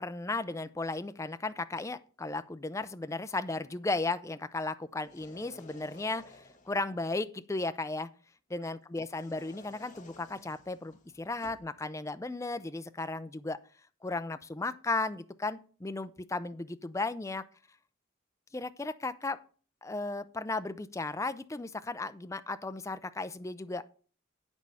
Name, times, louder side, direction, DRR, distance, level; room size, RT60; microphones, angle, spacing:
voice 1, 0.0-8.1 8.5-13.6 14.0-17.4 18.5-19.4 19.8-23.8, left 3 dB, 15° left, 11 dB, 0.4 m, -35 dB
sound 1, 5.0-6.9 9.0-11.7, left 2 dB, 40° left, 1.6 m, -55 dB
8.7 x 6.2 x 5.5 m, 0.42 s
head